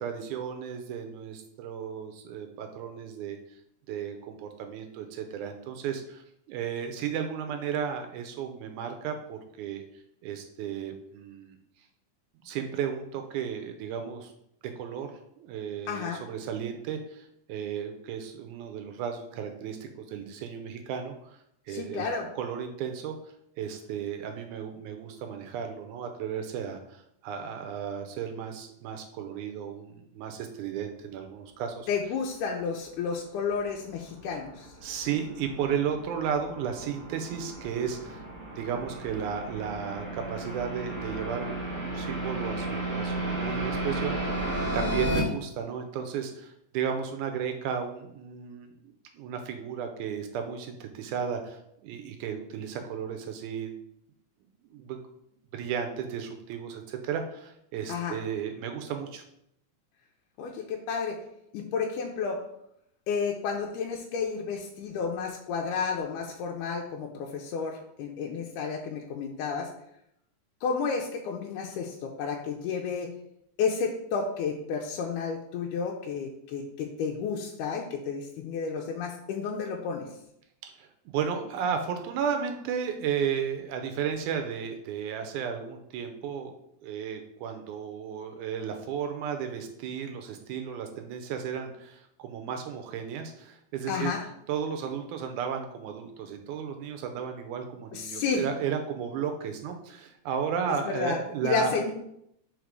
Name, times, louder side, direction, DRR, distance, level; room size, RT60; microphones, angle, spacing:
voice 1, 0.0-3.4 3.9-9.8 10.2-11.6 12.4-14.3 14.8-15.1 15.4-21.4 21.7-22.1 22.3-23.2 23.6-31.9 34.8-38.3 38.6-48.7 49.1-53.7 54.6-55.0 55.5-59.2 80.6-86.5 86.8-94.1 94.5-101.8, right 7 dB, 80° right, 5 dB, 2.0 m, -34 dB
voice 2, 15.9-16.2 21.7-22.3 31.9-34.7 44.7-45.1 57.9-58.2 60.4-61.2 61.5-62.4 63.1-69.7 70.6-73.1 73.6-80.1 93.9-94.2 97.9-98.4 100.9-101.9, left 5 dB, 85° left, 0 dB, 2.1 m, -31 dB
sound 1, 33.7-45.2, right 2 dB, 25° right, 1.5 m, -34 dB
5.0 x 4.1 x 4.7 m, 0.76 s
omnidirectional pair, 3.7 m